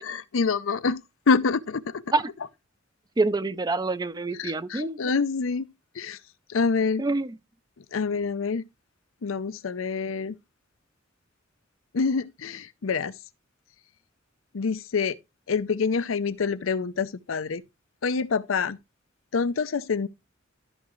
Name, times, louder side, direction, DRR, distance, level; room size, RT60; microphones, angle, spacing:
voice 1, 0.0-2.0 4.4-5.7 5.9-6.2 6.5-7.0 7.9-8.6 9.2-10.4 11.9-13.1 14.5-15.2 15.5-17.6 18.0-18.8 19.3-20.1, left 5 dB, 80° left, 0.6 m, -26 dB
voice 2, 3.2-5.0 7.0-7.3, right 3 dB, 20° right, 0.5 m, -26 dB
12.5 x 6.0 x 3.1 m
head